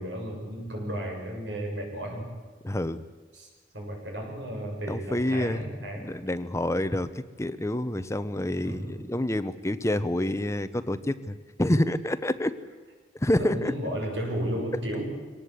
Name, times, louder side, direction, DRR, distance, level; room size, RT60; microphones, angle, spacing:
voice 1, 0.0-2.3 3.3-3.5 3.7-6.1 8.6-9.1 13.4-15.0, right 1 dB, 85° right, 0 dB, 7.2 m, -33 dB
voice 2, 2.6-3.0 4.9-5.6 6.0-12.6 13.2-13.7 14.7-14.8, left 1 dB, 15° left, 12 dB, 0.8 m, -28 dB
24.5 x 18.5 x 8.3 m, 1.3 s
head